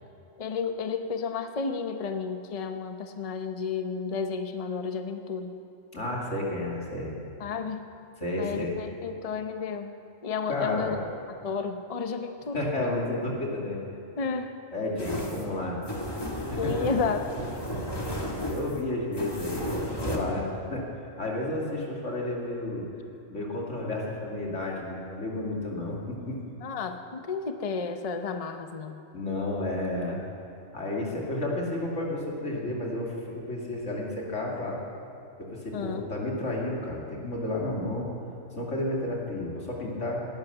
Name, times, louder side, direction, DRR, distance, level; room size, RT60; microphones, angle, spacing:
voice 1, 0.4-5.5 7.4-7.8 8.4-9.9 10.2-11.0 11.4-12.6 14.2-14.5 16.6-17.3 26.6-29.0 35.7-36.1, left 5 dB, 35° left, 7 dB, 0.7 m, -32 dB
voice 2, 5.9-7.1 8.2-8.8 10.5-11.0 12.5-13.8 14.7-15.8 16.5-16.9 17.4-17.5 18.5-20.8 21.2-22.9 23.3-26.4 29.1-30.2 30.7-34.8 35.4-38.1 38.5-40.2, left 1 dB, 85° left, -2 dB, 2.9 m, -31 dB
sound 1, 15.0-20.2, equal, 20° left, 1.8 m, -33 dB
18.0 x 11.5 x 6.8 m, 2.6 s
omnidirectional pair, 1.2 m